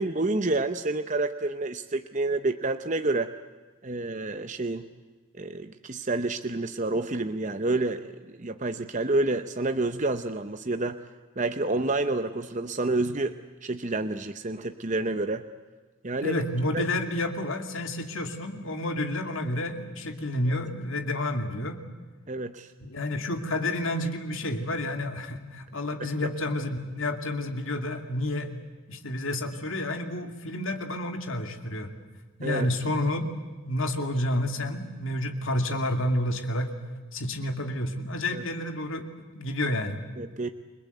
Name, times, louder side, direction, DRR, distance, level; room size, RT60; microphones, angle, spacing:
voice 1, 0.0-3.3 3.8-4.9 5.4-11.0 11.4-13.4 13.6-15.4 16.0-16.4 16.7-16.8 22.3-22.7 32.4-32.7 38.3-38.4 40.2-40.5, right 2 dB, 35° right, 9 dB, 0.8 m, -29 dB
voice 2, 16.2-21.8 22.8-28.5 28.9-31.9 32.4-33.3 33.6-36.7 37.1-40.0, left 1 dB, 65° left, 5 dB, 2.6 m, -30 dB
29.5 x 21.0 x 8.0 m, 1.3 s
head